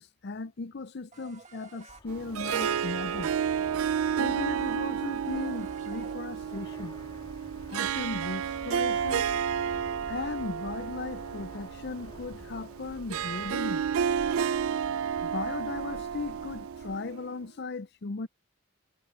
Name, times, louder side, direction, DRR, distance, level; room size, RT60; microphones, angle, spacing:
voice 1, 0.0-3.4 4.2-7.0 7.7-9.3 10.1-13.8 15.2-18.3, left 4 dB, 50° left, 0.5 m, -37 dB
sound 1, 1.1-6.6, right 4 dB, 35° right, 1.8 m, -52 dB
Fixed-wing aircraft airplane, 1.9-17.0, left 1 dB, 20° left, 1.7 m, -49 dB
Harp, 2.1-17.3, right 8 dB, 80° right, 0.4 m, -31 dB
head